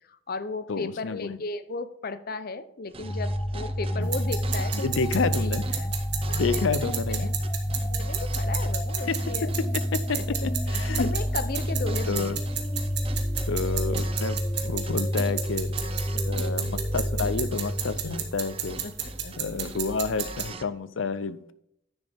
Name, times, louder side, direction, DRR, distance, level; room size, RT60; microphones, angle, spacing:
voice 1, 0.1-5.0 5.4-5.9 6.3-6.7 7.1-7.3 7.9-9.5 10.1-10.4 10.7-12.4 16.1-16.4 18.0-18.2 18.8-19.4, left 3 dB, 50° left, 12 dB, 0.7 m, -36 dB
voice 2, 0.7-1.4 3.9-4.4 4.7-5.7 6.3-7.4 9.1-9.2 9.9-10.3 10.7-11.1 12.1-12.4 13.5-15.7 16.3-18.8 19.4-21.5, left 4 dB, 85° left, 14 dB, 0.6 m, -30 dB
sound 1, 2.9-20.7, right 4 dB, 30° right, 0.6 m, -43 dB
sound 2, 3.0-19.4, equal, 15° left, 0.9 m, -29 dB
sound 3, 4.0-20.5, right 8 dB, 60° right, 1.5 m, -35 dB
10.5 x 6.6 x 3.5 m, 0.74 s
head